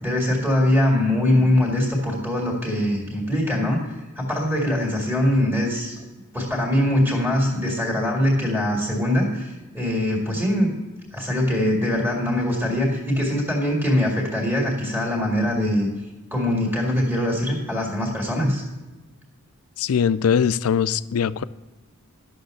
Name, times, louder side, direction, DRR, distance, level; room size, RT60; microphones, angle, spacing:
voice 1, 0.0-6.0 6.3-10.7 11.1-15.9 16.3-18.6, left 1 dB, 10° right, 2.1 m, -22 dB
voice 2, 19.8-21.4, left 7 dB, 85° left, 0.4 m, -21 dB
12.0 x 6.3 x 6.4 m
head